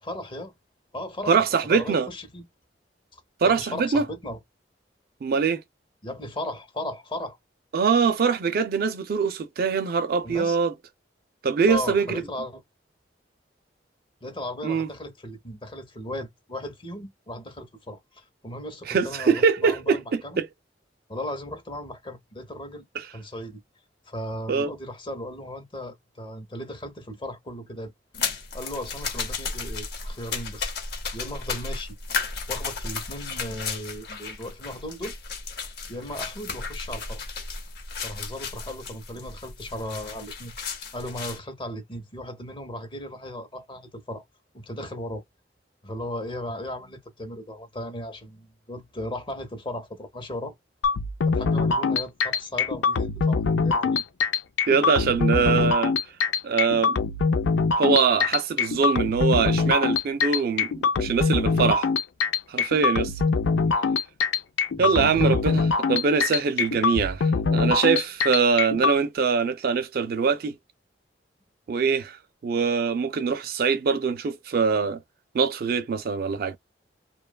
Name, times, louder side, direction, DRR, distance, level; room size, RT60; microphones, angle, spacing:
voice 1, 0.0-0.5 0.9-1.4 1.6-2.4 3.1-4.4 6.0-7.4 10.2-10.6 11.7-12.6 14.2-20.4 21.1-22.8 23.1-23.6 24.1-27.9 28.2-28.3 28.5-30.7 31.1-32.0 32.5-35.1 35.6-37.2 38.0-40.5 40.9-44.2 44.5-45.2 45.8-50.5 51.2-54.0 64.8-65.4, left 1 dB, 25° left, 0.7 m, -36 dB
voice 2, 1.3-2.1 3.4-4.1 5.2-5.6 7.7-10.7 11.4-12.2 14.6-14.9 18.9-20.5 23.0-23.1 24.5-24.7 54.7-55.9 56.4-57.0 57.8-61.9 62.5-63.1 64.8-70.6 71.7-72.2 72.4-75.0 75.3-76.6, right 5 dB, 55° right, 0.4 m, -23 dB
sound 1, 28.1-41.4, left 5 dB, 60° left, 0.8 m, -34 dB
sound 2, 50.8-69.0, left 4 dB, 85° left, 0.4 m, -23 dB
2.7 x 2.2 x 2.2 m
head